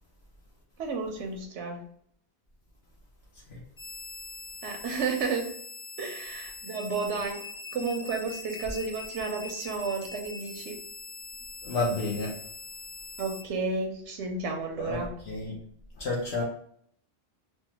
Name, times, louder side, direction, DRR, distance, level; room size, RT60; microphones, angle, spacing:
voice 1, 0.8-1.8 4.6-5.5 6.0-7.4 7.7-10.8 13.2-15.1, right 4 dB, 80° right, 3 dB, 0.9 m, -32 dB
sound 1, 3.8-13.4, left 4 dB, 35° left, 0.5 m, -42 dB
voice 2, 11.6-12.4 14.8-15.6 16.0-16.4, left 2 dB, 65° left, -4 dB, 0.9 m, -30 dB
3.5 x 2.0 x 2.9 m, 0.65 s
omnidirectional pair, 1.2 m